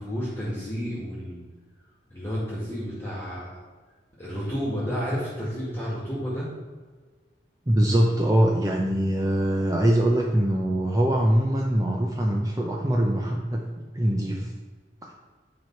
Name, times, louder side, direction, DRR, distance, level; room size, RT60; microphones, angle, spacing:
voice 1, 0.0-1.4 2.1-3.6 4.2-6.5, equal, 15° left, -8 dB, 1.8 m, -31 dB
voice 2, 7.7-14.5 15.0-15.1, right 1 dB, 20° right, 0 dB, 0.6 m, -23 dB
9.5 x 4.9 x 4.6 m, 1.4 s
head